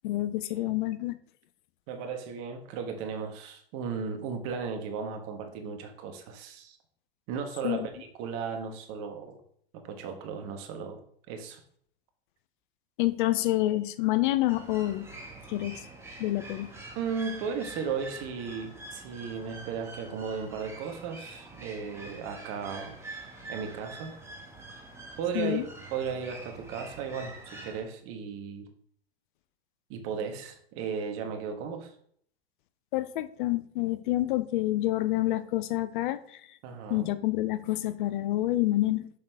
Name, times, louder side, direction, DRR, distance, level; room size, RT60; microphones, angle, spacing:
voice 1, 0.0-1.2 7.6-7.8 13.0-15.1 15.5-15.8 16.2-16.7 25.3-25.6 32.9-36.4 36.9-39.1, left 16 dB, 50° left, 13 dB, 0.5 m, -28 dB
voice 2, 1.9-6.8 7.3-7.9 8.2-9.4 9.7-11.0 11.3-11.6 16.9-23.0 23.5-24.1 25.2-25.6 25.9-28.7 29.9-31.9 36.6-37.1, right 6 dB, 45° right, 6 dB, 1.4 m, -35 dB
sound 1, 14.5-27.8, right 2 dB, 10° right, 1.7 m, -45 dB
6.5 x 5.6 x 3.4 m, 0.62 s
hypercardioid pair, 105°, 32 cm